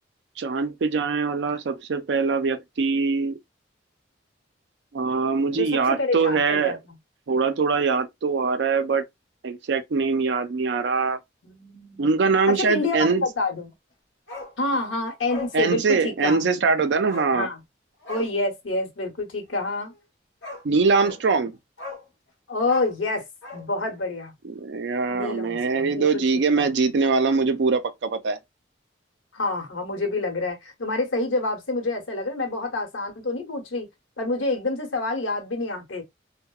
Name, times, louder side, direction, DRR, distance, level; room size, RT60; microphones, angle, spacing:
voice 1, 0.4-3.4 4.9-6.8 7.3-9.0 9.4-11.2 12.0-13.2 15.5-17.5 20.6-21.6 24.4-28.4, right 4 dB, 65° right, 0.4 m, -23 dB
voice 2, 5.5-6.8 11.4-12.1 12.5-13.7 14.6-16.5 17.3-17.6 18.1-19.9 22.5-23.2 23.5-24.3 25.1-26.7 29.3-33.9 34.2-36.0, left 2 dB, 85° left, 0.8 m, -27 dB
Bark, 14.3-14.6 14.8-14.9 15.3-15.6 16.2-16.4 17.1-17.3 18.0-18.3 19.9-20.0 20.4-20.6 21.0-21.2 21.8-22.1 22.6-23.7 23.9-24.0, left 3 dB, 60° left, 0.8 m, -38 dB
2.7 x 2.0 x 2.2 m
head